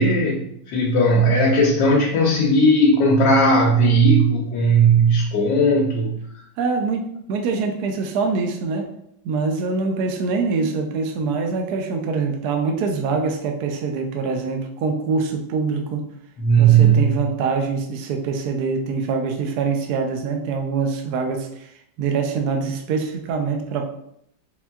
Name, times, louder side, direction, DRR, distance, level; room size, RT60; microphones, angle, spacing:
voice 1, 0.0-6.2 16.4-17.1, right 2 dB, 75° left, 0 dB, 1.2 m, -17 dB
voice 2, 6.6-8.9 9.2-16.1 16.6-21.7 22.0-23.9, right 4 dB, 70° right, 4 dB, 1.0 m, -24 dB
4.3 x 3.5 x 2.2 m, 0.72 s
omnidirectional pair, 2.1 m